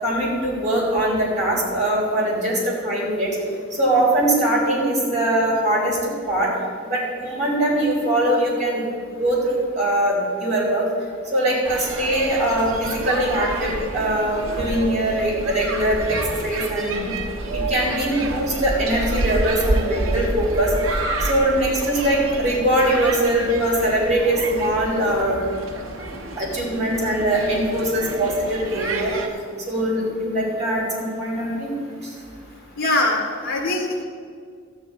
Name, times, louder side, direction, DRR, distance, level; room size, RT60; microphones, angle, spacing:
voice 1, 0.0-3.3 3.7-6.5 6.9-8.9 9.2-10.8 11.3-17.2 17.7-20.7 21.2-25.4 26.4-29.1 29.7-31.7, right 1 dB, 35° right, -4 dB, 3.8 m, -22 dB
sound 1, 11.6-29.3, right 2 dB, 85° right, 1.4 m, -29 dB
voice 2, 32.8-34.0, left 2 dB, 70° left, 0 dB, 1.3 m, -22 dB
13.5 x 4.9 x 9.1 m, 2.1 s
head